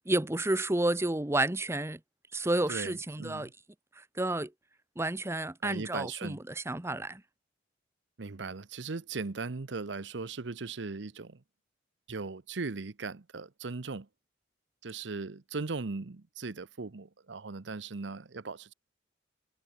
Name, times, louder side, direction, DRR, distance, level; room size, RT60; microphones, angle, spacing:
voice 1, 0.0-2.0 2.3-3.5 4.0-4.5 5.0-7.2, right 2 dB, 15° right, 0.9 m, -31 dB
voice 2, 2.7-3.5 5.6-6.4 8.2-11.4 12.1-14.1 14.8-18.7, right 4 dB, 70° right, 0.8 m, -38 dB
head